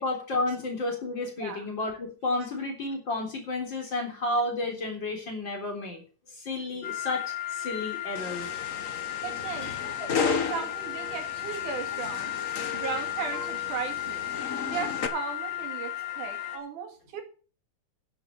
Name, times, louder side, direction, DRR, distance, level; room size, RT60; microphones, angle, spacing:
voice 1, 0.0-6.0 6.3-8.5 10.0-10.1, left 2 dB, 35° left, 4.2 m, -31 dB
sound 1, 6.8-16.6, left 13 dB, 75° left, 3.2 m, -35 dB
sound 2, 8.2-15.1, left 5 dB, 60° left, 0.8 m, -34 dB
voice 2, 9.2-9.8 10.2-12.4 12.7-14.4 14.7-17.2, right 6 dB, 90° right, 3.7 m, -36 dB
11.0 x 7.9 x 6.9 m
omnidirectional pair, 3.5 m